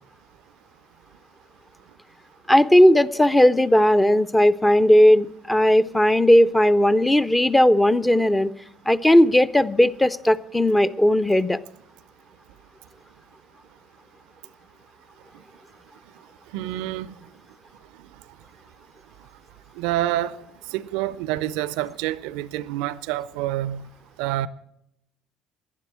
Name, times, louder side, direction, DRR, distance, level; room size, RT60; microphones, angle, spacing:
voice 1, 2.5-8.5 8.9-11.6, left 1 dB, 10° left, 0.6 m, -17 dB
voice 2, 16.5-17.1 19.8-20.4 20.7-23.8 24.2-24.5, right 14 dB, 75° right, 0.4 m, -27 dB
11.0 x 10.0 x 7.6 m
hypercardioid pair, 55°, 0 cm